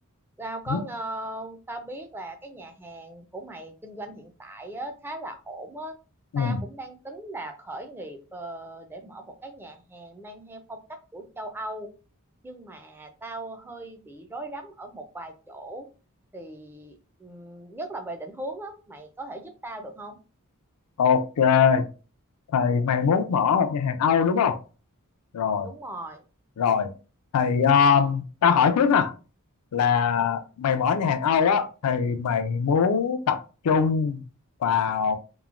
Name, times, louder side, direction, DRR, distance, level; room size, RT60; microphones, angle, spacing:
voice 1, 0.4-5.9 6.4-10.8 11.1-11.9 12.4-15.9 16.3-16.9 17.2-20.2 25.6-26.2, right 1 dB, 10° right, 0.4 m, -38 dB
voice 2, 21.0-21.9 22.5-24.6 25.3-25.7 26.6-26.9 27.3-29.1 29.7-34.2 34.6-35.2, left 6 dB, 80° left, 0.4 m, -22 dB
3.0 x 2.1 x 2.4 m
head